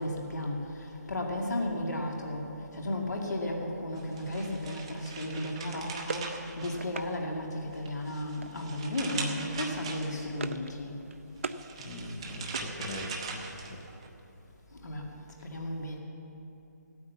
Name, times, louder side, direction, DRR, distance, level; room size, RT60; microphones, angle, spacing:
voice 1, 0.0-2.4 2.7-6.3 6.6-10.9 14.8-15.0 15.4-16.0, left 1 dB, 70° left, 0 dB, 2.2 m, -34 dB
sound 1, 4.0-7.3 7.7-10.4 11.4-14.1, right 4 dB, 20° right, 0.9 m, -41 dB
sound 2, 5.7-7.1 8.4-8.8 9.1-9.4 9.7-10.7 11.0-11.6 12.0-13.3, right 4 dB, 45° right, 0.5 m, -41 dB
voice 2, 11.8-13.8, left 1 dB, 15° left, 1 dB, 0.7 m, -40 dB
16.0 x 9.5 x 7.1 m, 2.9 s
hypercardioid pair, 175°, 10 cm